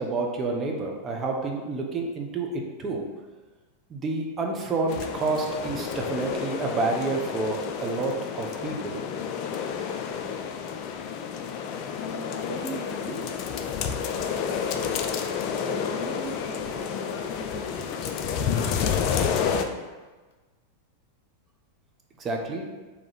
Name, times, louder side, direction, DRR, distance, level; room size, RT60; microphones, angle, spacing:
voice 1, 0.0-3.1 3.9-9.0 22.2-22.6, right 3 dB, 25° right, 1 dB, 0.6 m, -29 dB
sound 1, 4.9-19.6, left 7 dB, 40° left, 0.3 m, -30 dB
voice 2, 12.0-13.5 14.1-15.0 15.5-20.1, left 1 dB, 60° left, 0 dB, 0.8 m, -39 dB
3.7 x 2.9 x 4.1 m, 1.3 s
figure-of-eight pair, 90°, 0 cm